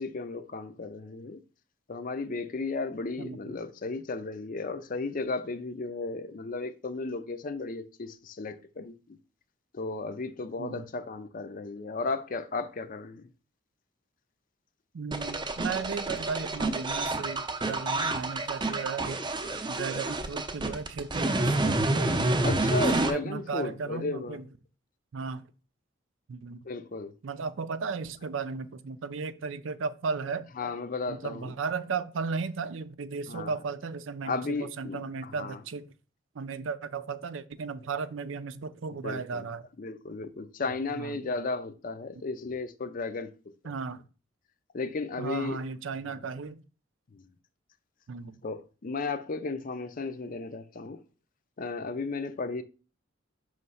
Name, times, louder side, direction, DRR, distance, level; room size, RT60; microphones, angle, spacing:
voice 1, 0.0-1.4 1.9-9.2 9.7-13.3 22.4-24.4 26.6-27.1 30.6-31.5 33.3-33.5 34.2-35.6 39.0-39.5 39.8-43.3 43.6-43.7 44.7-45.6 46.0-46.1 47.1-47.2 48.4-51.0 51.6-52.6, left 3 dB, 45° left, 0.5 m, -34 dB
voice 2, 3.2-3.6 10.6-10.9 14.9-19.2 19.7-22.4 22.8-24.4 25.1-25.4 26.3-26.6 27.2-30.5 31.1-35.9 36.3-39.6 40.6-41.2 43.6-44.0 45.2-46.6 48.1-48.4, right 5 dB, 80° right, 0.5 m, -35 dB
sound 1, 15.1-23.1, right 2 dB, 25° right, 0.6 m, -28 dB
5.7 x 3.2 x 5.4 m
head